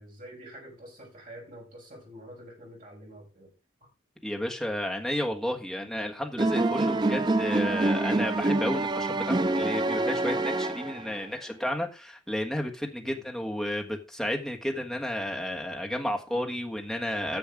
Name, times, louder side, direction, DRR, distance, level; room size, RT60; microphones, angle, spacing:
voice 1, 0.0-3.5 13.0-13.2, equal, 45° right, -2 dB, 6.2 m, -47 dB
voice 2, 4.2-17.4, left 1 dB, ahead, 1 dB, 1.6 m, -32 dB
sound 1, 6.4-11.3, right 2 dB, 20° right, 0.4 m, -26 dB
10.5 x 6.9 x 4.9 m, 0.29 s
head